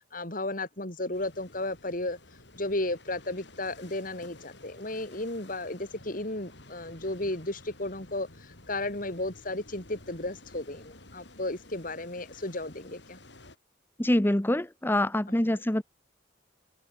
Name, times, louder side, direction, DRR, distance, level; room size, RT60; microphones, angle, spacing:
voice 1, 0.0-2.2 2.6-13.2 15.5-15.6, left 2 dB, 45° left, 3.6 m, -34 dB
sound 1, 1.1-13.6, left 2 dB, 65° left, 5.2 m, -52 dB
voice 2, 14.0-15.8, left 1 dB, 10° left, 0.8 m, -25 dB
head